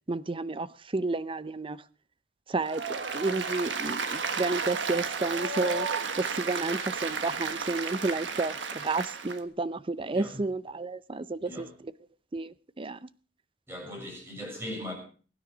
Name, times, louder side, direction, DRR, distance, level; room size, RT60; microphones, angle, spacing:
voice 1, 0.1-1.8 2.5-5.9 6.2-11.9 12.3-13.1, right 3 dB, 30° right, 0.6 m, -31 dB
Applause, 2.6-9.4, right 5 dB, 85° right, 1.5 m, -33 dB
voice 2, 13.7-14.9, left 1 dB, 15° right, 6.9 m, -39 dB
22.5 x 9.9 x 5.1 m
head